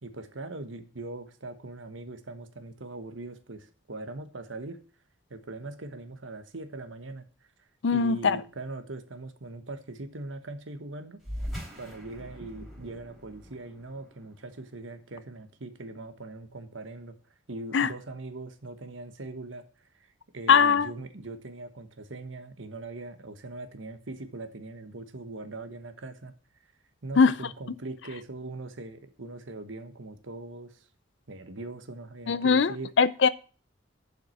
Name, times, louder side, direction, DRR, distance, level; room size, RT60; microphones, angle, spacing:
voice 1, 0.0-4.8 5.3-7.2 7.9-11.2 11.8-17.2 17.5-19.6 19.9-26.3 27.0-30.8 31.3-32.9, right 2 dB, 75° right, 9 dB, 1.2 m, -41 dB
voice 2, 7.8-8.4 17.7-17.9 20.5-20.9 27.2-27.3 32.3-33.3, left 5 dB, 60° left, 17 dB, 0.5 m, -21 dB
sound 1, 11.2-16.1, equal, ahead, 3.7 m, -42 dB
7.5 x 5.8 x 7.7 m, 0.39 s
head